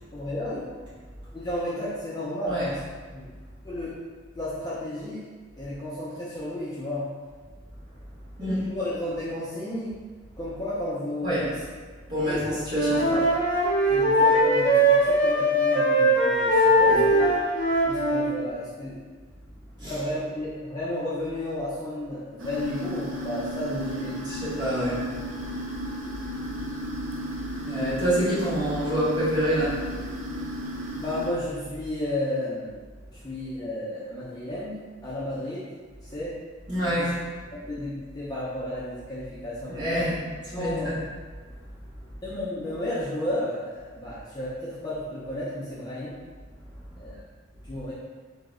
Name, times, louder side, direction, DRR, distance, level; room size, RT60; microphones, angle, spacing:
voice 1, 0.1-0.7 1.3-2.8 3.1-3.3 3.6-4.0 4.3-5.3 5.6-7.1 8.4-10.0 10.4-11.5 12.1-12.6 13.9-17.3 17.9-19.1 19.8-24.2 31.0-32.8 33.1-35.7 36.1-36.3 37.0-37.1 37.7-40.1 40.5-41.0 42.2-46.2 47.0-47.2 47.6-47.9, left 1 dB, 20° left, -9 dB, 0.4 m, -32 dB
voice 2, 12.1-13.3 16.8-17.0 19.8-19.9 23.7-25.1 27.6-29.8 36.7-37.2 39.7-40.9, equal, 20° right, -11 dB, 1.0 m, -27 dB
Wind instrument woodwind instrument, 12.7-18.3, right 1 dB, 45° right, 1.2 m, -21 dB
sound 1, 22.4-31.3, equal, 80° right, 0.5 m, -34 dB
2.8 x 2.0 x 3.6 m, 1.5 s
head